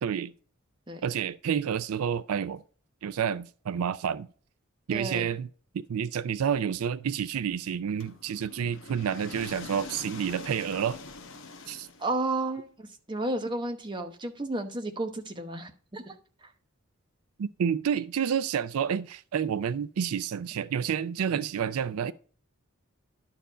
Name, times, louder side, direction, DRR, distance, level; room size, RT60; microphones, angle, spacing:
voice 1, 0.0-0.3 1.0-2.6 3.0-4.3 4.9-5.5 5.7-11.0 11.7-11.9 17.4-22.1, right 8 dB, 85° right, 0.4 m, -29 dB
voice 2, 4.9-5.3 12.0-16.1 16.4-16.5, right 2 dB, 20° right, 0.9 m, -32 dB
sound 1, 8.0-12.4, left 3 dB, 65° left, 1.0 m, -44 dB
11.5 x 4.6 x 4.9 m
head